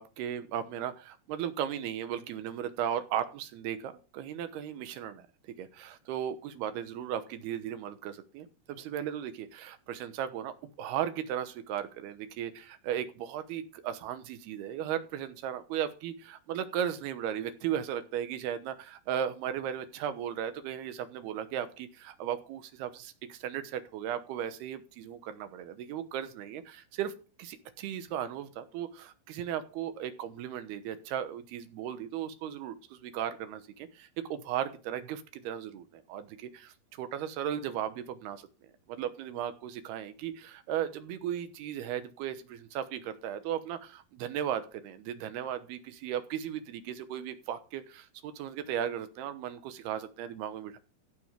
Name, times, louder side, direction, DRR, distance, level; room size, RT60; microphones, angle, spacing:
voice 1, 0.0-5.3 5.6-27.1 27.4-38.5 38.9-50.8, right 10 dB, 85° right, 10 dB, 3.1 m, -36 dB
15.0 x 7.0 x 5.1 m, 0.34 s
omnidirectional pair, 4.5 m